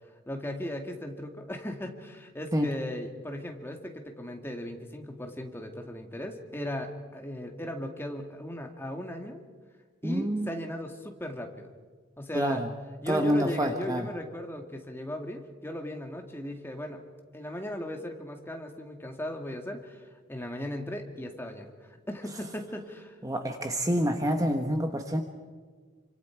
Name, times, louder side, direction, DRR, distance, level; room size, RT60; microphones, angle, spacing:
voice 1, 0.3-9.4 10.0-11.7 12.2-12.6 13.0-17.0 17.3-23.2, left 1 dB, 10° left, 3 dB, 2.1 m, -37 dB
voice 2, 10.0-10.5 12.3-12.7 13.1-14.1 23.2-25.2, equal, 20° right, 5 dB, 1.2 m, -27 dB
28.0 x 25.5 x 4.6 m, 1.5 s
head